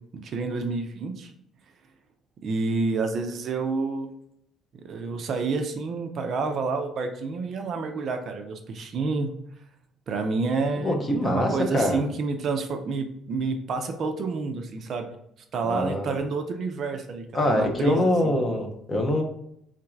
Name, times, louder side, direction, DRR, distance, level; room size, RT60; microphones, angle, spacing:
voice 1, 0.1-1.3 2.4-4.1 4.7-9.4 10.1-15.1 15.5-18.4, right 4 dB, 40° right, 6 dB, 0.4 m, -29 dB
voice 2, 10.8-12.1 15.7-16.2 17.3-19.2, left 1 dB, 20° left, 2 dB, 0.5 m, -24 dB
3.9 x 2.5 x 4.4 m, 0.74 s
cardioid pair, 175°, 0 cm